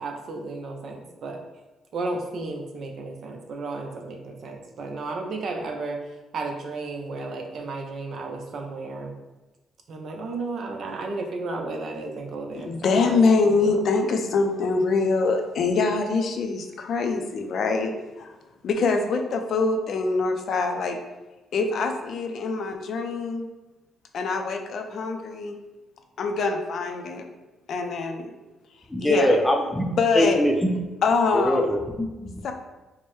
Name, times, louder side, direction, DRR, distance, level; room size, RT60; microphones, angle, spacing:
voice 1, 0.0-1.4 1.9-6.0 6.3-9.2 9.9-13.8, right 3 dB, 60° right, 3 dB, 0.6 m, -33 dB
voice 2, 12.6-17.9 18.2-18.3 18.6-21.0 21.5-23.5 24.1-25.6 26.2-27.2 27.7-28.3 29.0-29.4 29.9-30.4 31.0-31.7 32.4-32.5, left 4 dB, 65° left, 5 dB, 0.4 m, -24 dB
voice 3, 28.9-29.9 30.1-30.7 31.3-32.4, left 1 dB, 10° left, 3 dB, 0.5 m, -22 dB
4.5 x 2.1 x 3.1 m, 1.1 s
cardioid pair, 90°, 0 cm